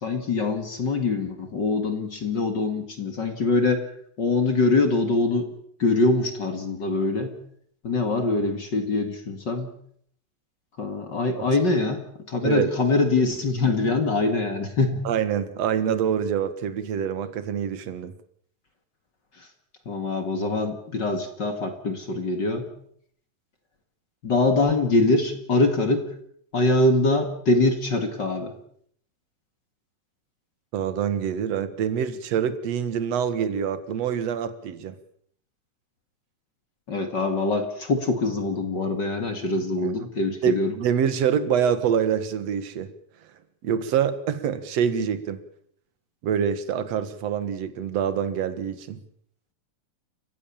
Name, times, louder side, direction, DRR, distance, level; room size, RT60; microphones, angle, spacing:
voice 1, 0.0-3.9 4.2-5.5 5.8-7.4 7.8-9.7 10.8-15.0 19.4-19.5 19.9-22.7 24.2-26.1 26.5-28.5 36.9-40.8, left 3 dB, 35° left, 7 dB, 2.3 m, -23 dB
voice 2, 15.0-18.1 30.7-35.0 39.8-39.9 40.4-42.9 43.6-45.4 46.2-49.0, right 8 dB, 55° right, 12 dB, 2.4 m, -25 dB
29.5 x 15.0 x 7.3 m, 0.65 s
omnidirectional pair, 3.8 m